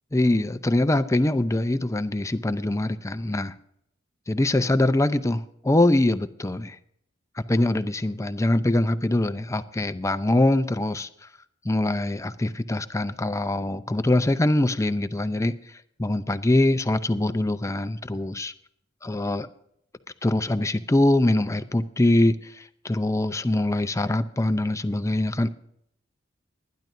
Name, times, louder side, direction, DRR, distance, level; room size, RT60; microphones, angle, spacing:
voice 1, 0.1-3.5 4.3-6.8 7.4-11.1 11.6-15.5 16.0-18.5 19.0-19.5 20.2-22.4 22.8-25.5, left 1 dB, 15° left, 0.6 m, -23 dB
21.5 x 10.5 x 2.6 m
head